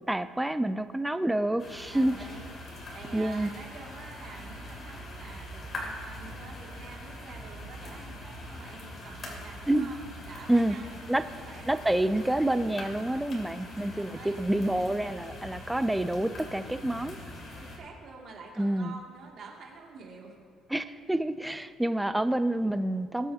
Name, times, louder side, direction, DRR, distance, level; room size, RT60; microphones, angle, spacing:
voice 1, 0.1-2.1 3.1-3.5 9.7-9.9 10.5-10.8 11.1-11.2 11.7-17.2 18.6-18.9 20.7-23.3, right 1 dB, 5° right, 11 dB, 0.4 m, -28 dB
sound 1, 1.6-17.8, left 1 dB, 35° left, 2.9 m, -43 dB
voice 2, 1.9-12.0 13.9-14.5 17.5-20.4, right 4 dB, 50° right, -2 dB, 2.4 m, -48 dB
20.5 x 8.2 x 2.8 m, 2.4 s
cardioid pair, 125°, 0 cm